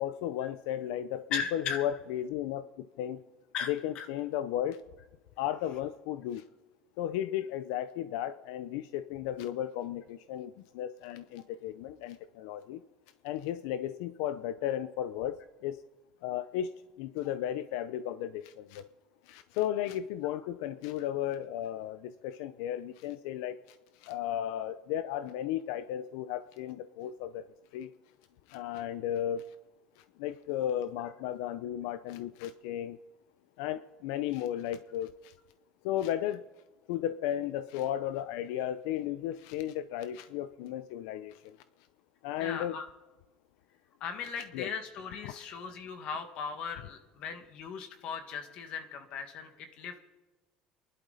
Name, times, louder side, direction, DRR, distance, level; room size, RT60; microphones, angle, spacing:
voice 1, 0.0-3.2 3.7-4.8 5.4-6.4 7.0-12.8 13.2-15.8 16.2-18.9 19.3-27.4 27.7-27.9 28.5-29.5 30.0-33.0 33.6-35.3 35.8-36.4 36.9-41.6 42.2-42.8 44.5-44.7 45.2-45.4, left 11 dB, 90° left, 12 dB, 0.6 m, -35 dB
voice 2, 1.3-1.9 3.5-4.1 20.3-20.4 42.4-42.9 44.0-50.0, left 6 dB, 50° left, 7 dB, 1.9 m, -38 dB
29.0 x 11.5 x 4.2 m, 1.2 s
cardioid pair, 155°, 2 cm